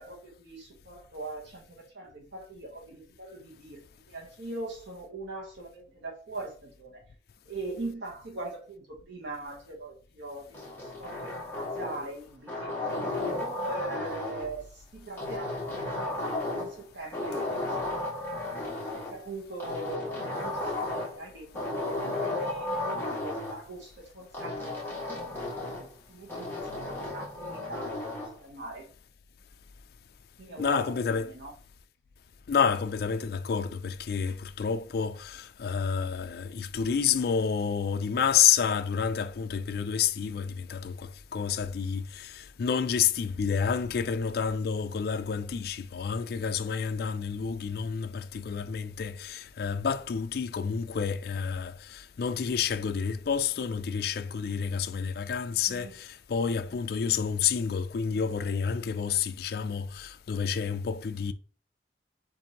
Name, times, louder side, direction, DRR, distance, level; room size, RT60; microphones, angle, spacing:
voice 1, 0.0-7.0 7.5-18.3 18.9-25.2 25.5-28.9 30.4-31.5 55.5-55.9, right 2 dB, 90° right, 1.1 m, -41 dB
sound 1, 10.5-12.1 12.5-14.5 15.2-16.8 17.1-19.1 19.6-21.2 21.5-23.6 24.3-25.9 26.3-28.3, left 2 dB, 15° left, 1.5 m, -34 dB
voice 2, 30.6-31.3 32.5-61.3, left 7 dB, 55° left, 0.3 m, -29 dB
7.1 x 2.6 x 2.9 m
head